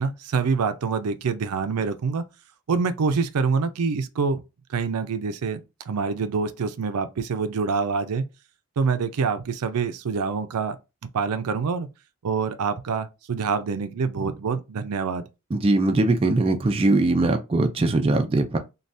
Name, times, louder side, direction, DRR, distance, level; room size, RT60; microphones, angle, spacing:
voice 1, 0.0-2.2 2.7-4.4 4.7-5.6 5.9-8.3 8.8-10.8 11.1-11.9 12.2-15.2, right 5 dB, 85° right, 0.4 m, -26 dB
voice 2, 15.5-18.6, right 2 dB, 25° right, 0.3 m, -21 dB
3.3 x 2.3 x 2.6 m
head